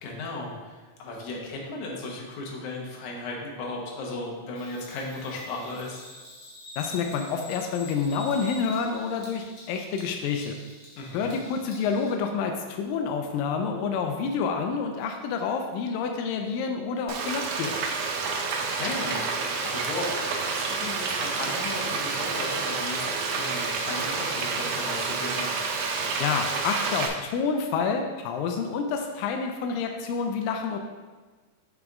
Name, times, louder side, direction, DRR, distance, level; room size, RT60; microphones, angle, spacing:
voice 1, 0.0-6.1 11.0-11.4 18.5-25.5, left 2 dB, 70° left, -1 dB, 2.4 m, -36 dB
Bird vocalization bird call bird song, 4.5-12.1, left 2 dB, 50° left, 1.1 m, -46 dB
voice 2, 6.8-10.6 11.1-17.7 26.2-30.8, left 5 dB, 90° left, 4 dB, 2.2 m, -28 dB
Frying (food), 17.1-27.1, right 4 dB, 75° right, 1.8 m, -29 dB
6.6 x 5.1 x 3.6 m, 1.3 s
omnidirectional pair, 3.9 m